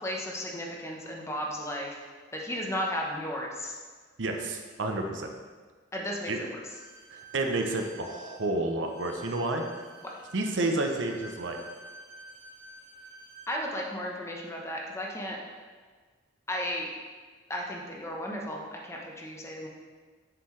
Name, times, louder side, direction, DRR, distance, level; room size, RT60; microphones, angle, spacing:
voice 1, 0.0-2.0 2.3-3.7 5.9-6.6 10.0-10.1 13.5-15.4 16.5-16.9 17.5-19.7, equal, 15° left, -1 dB, 1.0 m, -34 dB
voice 2, 4.2-5.3 6.3-6.4 7.1-9.6 10.3-11.6, right 2 dB, 80° right, 4 dB, 0.8 m, -30 dB
Bowed string instrument, 6.6-13.5, right 2 dB, 65° right, 1.6 m, -50 dB
7.2 x 6.9 x 3.3 m, 1.5 s
head